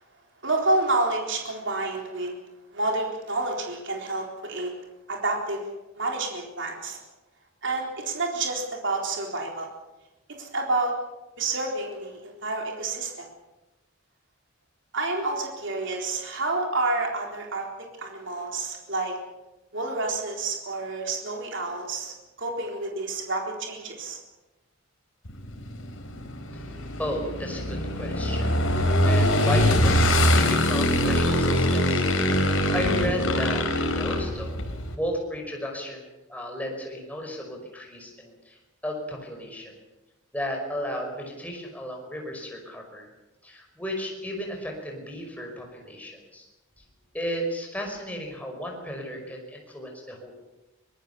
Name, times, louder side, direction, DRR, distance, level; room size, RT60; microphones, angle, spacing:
voice 1, 0.4-2.3 2.7-4.7 5.1-5.7 6.0-7.0 7.6-9.7 10.4-10.9 11.4-13.3 14.9-17.7 18.0-19.1 19.7-24.2, right 2 dB, 60° right, 1 dB, 4.0 m, -29 dB
Motorcycle / Engine, 25.2-34.9, left 1 dB, 75° left, 4.2 m, -23 dB
voice 2, 26.5-32.5 32.7-34.7 34.9-38.6 38.8-39.7 40.3-43.1 43.4-46.5 47.1-50.4, equal, 5° left, 1 dB, 5.4 m, -34 dB
24.0 x 19.5 x 7.0 m, 1.0 s
head